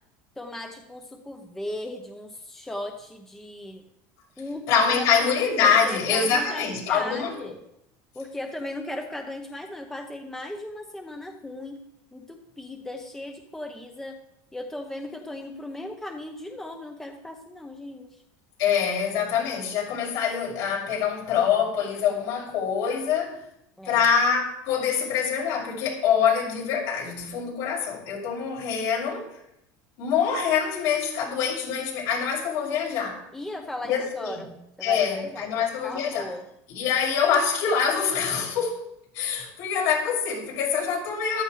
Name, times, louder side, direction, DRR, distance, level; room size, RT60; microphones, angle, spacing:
voice 1, 0.4-3.8 4.4-4.7 5.0-7.6 8.1-11.8 12.1-14.2 14.5-18.2 23.8-24.1 33.3-34.5 34.8-36.4, left 1 dB, 5° left, 3 dB, 1.0 m, -37 dB
voice 2, 4.7-7.5 18.6-23.4 23.8-29.3 30.0-33.2 33.9-34.4 34.8-36.3 36.7-38.8 39.1-41.4, left 7 dB, 65° left, -3 dB, 6.2 m, -25 dB
14.5 x 12.5 x 3.3 m, 0.78 s
cardioid pair, 150°, 8 cm